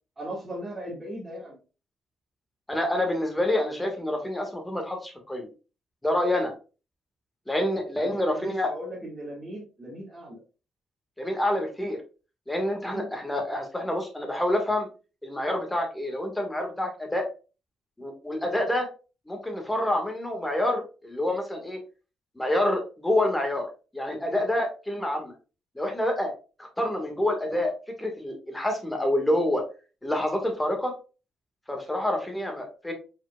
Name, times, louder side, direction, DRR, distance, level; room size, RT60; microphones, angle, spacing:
voice 1, 0.2-1.6 8.0-10.4 12.8-13.1, right 1 dB, 20° right, -5 dB, 1.7 m, -38 dB
voice 2, 2.7-5.5 6.0-6.5 7.5-8.7 11.2-12.0 12.5-14.9 15.2-17.3 18.0-18.9 19.3-21.8 22.3-25.3 25.7-26.3 26.6-27.7 28.0-29.6 30.0-30.9 31.7-32.9, left 1 dB, 10° left, 3 dB, 1.6 m, -27 dB
5.0 x 4.2 x 2.3 m, 0.33 s
cardioid pair, 90°, 0 cm